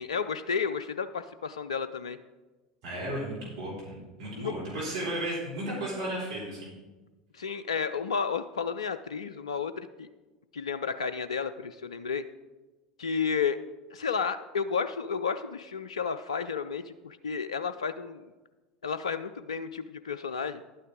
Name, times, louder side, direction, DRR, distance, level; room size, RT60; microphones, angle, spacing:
voice 1, 0.0-2.2 4.4-4.5 7.3-10.1 10.5-12.2 13.0-13.6 13.9-18.2 18.8-20.6, left 6 dB, 75° left, 12 dB, 0.4 m, -32 dB
voice 2, 2.8-6.7 7.4-7.5, right 1 dB, 65° right, -5 dB, 4.0 m, -34 dB
11.0 x 9.2 x 3.6 m, 1.2 s
figure-of-eight pair, 75°, 3 cm